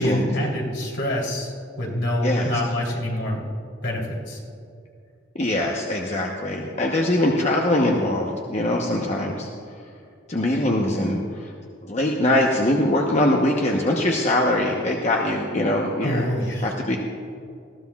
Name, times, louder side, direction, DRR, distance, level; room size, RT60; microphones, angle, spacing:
voice 1, 0.0-3.4 3.8-4.4 16.0-16.8, equal, 65° left, -2 dB, 3.1 m, -26 dB
voice 2, 5.3-9.5 10.3-11.2 11.9-16.2 16.6-17.0, left 1 dB, 35° left, 0 dB, 0.9 m, -22 dB
20.0 x 15.0 x 2.3 m, 2.5 s
head